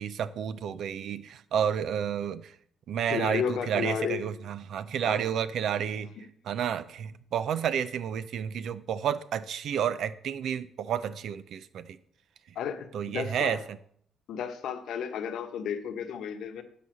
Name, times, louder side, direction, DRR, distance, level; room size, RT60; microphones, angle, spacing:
voice 1, 0.0-2.5 2.9-6.1 6.5-12.0 12.9-13.6, right 8 dB, 70° right, 0.5 m, -30 dB
voice 2, 3.1-4.3 5.0-5.3 6.7-6.8 12.5-13.6 14.3-16.6, left 7 dB, 75° left, 1.1 m, -33 dB
10.5 x 4.1 x 6.4 m
cardioid pair, 80°, 0 cm